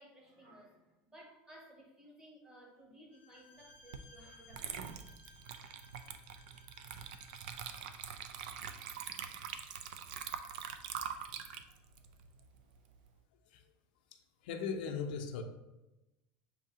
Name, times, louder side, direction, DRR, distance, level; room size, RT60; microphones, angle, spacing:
voice 1, 0.0-5.1, right 1 dB, 15° right, -1 dB, 0.9 m, -58 dB
Bowed string instrument, 3.1-8.0, left 2 dB, 30° left, 0.4 m, -61 dB
Water / Liquid, 3.9-4.1 4.5-13.0, right 8 dB, 75° right, 0.4 m, -44 dB
voice 2, 14.1-15.4, left 6 dB, 80° left, 3 dB, 0.6 m, -39 dB
6.3 x 2.7 x 2.8 m, 0.99 s
supercardioid pair, 170°, 5 cm